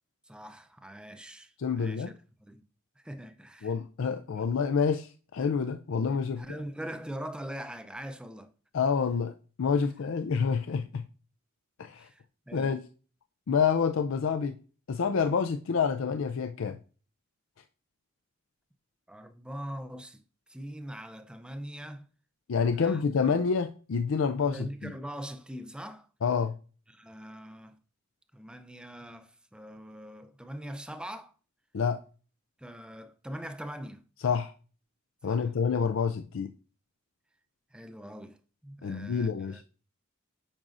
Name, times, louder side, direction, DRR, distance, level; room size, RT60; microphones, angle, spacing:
voice 1, 0.3-2.1 2.4-2.6 3.0-3.7 4.3-4.4 6.4-8.5 11.9-12.8 19.1-20.2 20.5-22.1 22.7-23.5 24.5-26.1 26.9-27.8 28.3-31.3 32.6-34.0 35.2-35.5 37.7-38.4 38.6-39.6, equal, 5° right, 0.5 m, -42 dB
voice 2, 1.6-2.1 3.6-6.4 8.7-9.3 9.6-11.0 11.8-12.1 12.5-12.8 13.5-14.6 14.9-16.8 22.5-24.9 26.2-26.6 31.7-32.0 34.2-34.5 35.2-36.5 38.8-39.6, left 6 dB, 70° left, 0.4 m, -28 dB
8.9 x 6.0 x 2.5 m
head